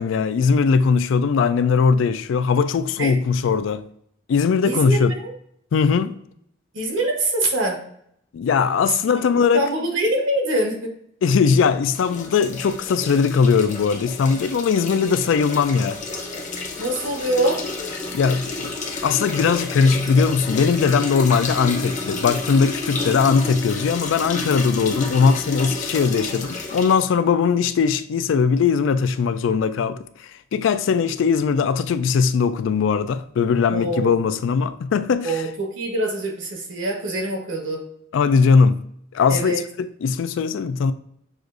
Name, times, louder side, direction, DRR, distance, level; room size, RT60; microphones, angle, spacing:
voice 1, 0.0-3.8 4.3-5.1 5.7-6.1 8.3-9.6 11.2-16.0 18.1-18.7 19.0-35.4 38.1-38.8 39.1-40.9, left 5 dB, 70° left, 0.3 m, -20 dB
voice 2, 4.6-5.3 6.7-7.8 9.2-10.9 16.8-17.6 33.7-34.1 35.2-37.8 39.3-39.6, right 1 dB, 70° right, 1.2 m, -24 dB
sound 1, 11.9-27.0, left 3 dB, 40° left, 0.7 m, -30 dB
6.2 x 2.5 x 2.5 m
head